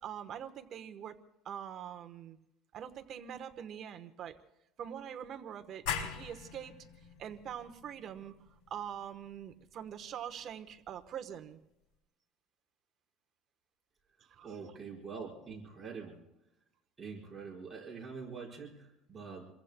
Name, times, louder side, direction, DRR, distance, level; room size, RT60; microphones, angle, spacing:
voice 1, 0.0-1.2 1.4-2.4 2.7-4.4 4.8-6.7 7.2-8.4 8.7-11.6 14.3-14.6, right 9 dB, 40° right, 7 dB, 1.1 m, -44 dB
sound 1, 5.9-11.2, left 7 dB, 80° left, 3.1 m, -43 dB
voice 2, 14.4-16.2 17.0-19.5, right 5 dB, 15° right, -3 dB, 5.3 m, -45 dB
28.5 x 22.5 x 2.3 m, 0.88 s
cardioid pair, 140°, 0 cm